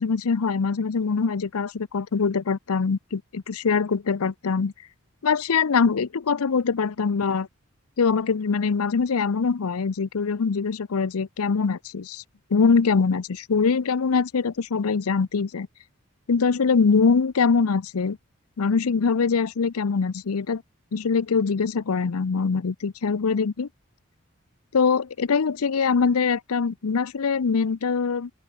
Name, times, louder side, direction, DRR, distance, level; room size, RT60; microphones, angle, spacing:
voice 1, 0.0-4.7 5.2-7.5 8.0-12.2 12.5-15.7 16.3-18.2 18.6-20.6 20.9-23.7 24.7-28.3, left 5 dB, 85° left, 0.6 m, -23 dB
open air
head